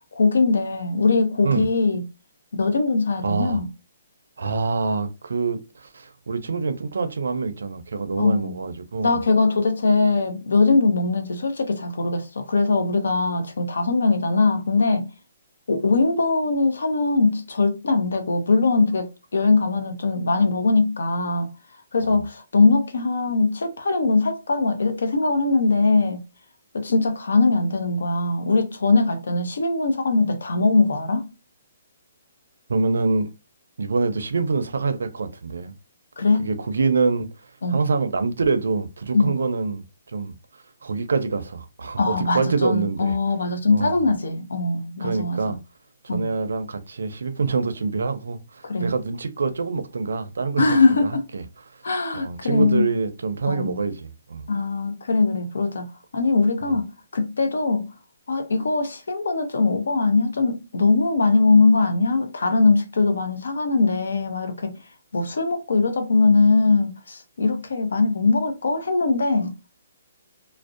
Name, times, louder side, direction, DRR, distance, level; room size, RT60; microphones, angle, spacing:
voice 1, 0.1-2.0 2.5-3.7 8.2-8.6 9.0-15.1 15.7-21.5 21.9-26.2 26.7-31.3 36.2-36.5 37.6-37.8 39.1-39.4 42.0-45.6 46.1-46.3 48.6-48.9 50.6-51.2 51.8-52.9 53.5-53.8 54.5-55.9 56.1-57.9 58.3-64.7 65.1-69.7, left 3 dB, 85° left, 0.7 m, -21 dB
voice 2, 3.2-3.6 4.4-9.2 22.0-22.2 32.7-33.3 33.8-35.7 36.4-37.3 37.7-39.8 40.1-40.3 40.8-43.1 43.7-44.0 45.0-45.6 46.0-50.6 50.9-51.4 52.1-54.5 56.6-56.8, right 4 dB, 85° right, 0.4 m, -25 dB
2.5 x 2.0 x 2.4 m
hypercardioid pair, 170°, 0 cm